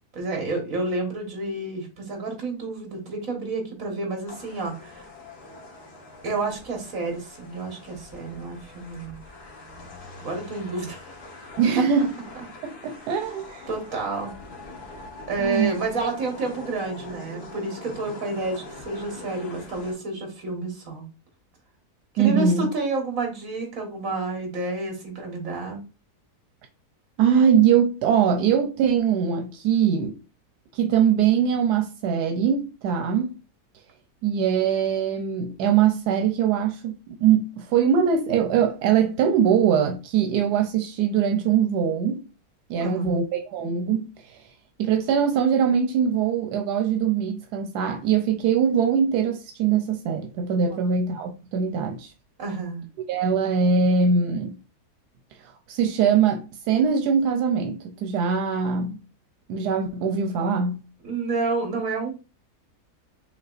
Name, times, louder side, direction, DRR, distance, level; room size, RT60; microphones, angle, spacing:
voice 1, 0.1-5.1 6.2-9.2 10.2-11.0 11.8-11.9 12.9-13.0 13.7-14.3 15.3-21.1 22.1-25.8 42.8-43.2 52.4-52.9 61.0-62.1, right 3 dB, 60° right, 1.8 m, -29 dB
sound 1, 4.3-19.9, left 2 dB, 80° left, 1.7 m, -43 dB
voice 2, 11.6-12.1 12.6-13.7 15.4-15.7 22.2-22.7 27.2-30.2 30.7-33.3 34.2-42.2 42.7-44.4 44.8-52.1 53.1-54.6 55.7-59.0 59.5-60.8, right 7 dB, 90° right, 1.2 m, -22 dB
5.7 x 3.3 x 2.4 m
omnidirectional pair, 1.7 m